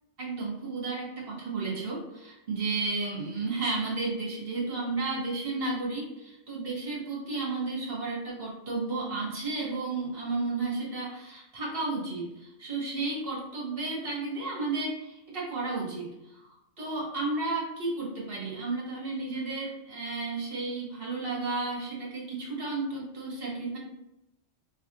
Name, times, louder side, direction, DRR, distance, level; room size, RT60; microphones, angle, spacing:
voice 1, 0.2-16.4 16.8-23.8, right 3 dB, 50° right, -5 dB, 1.4 m, -33 dB
3.3 x 2.4 x 4.1 m, 0.88 s
omnidirectional pair, 1.3 m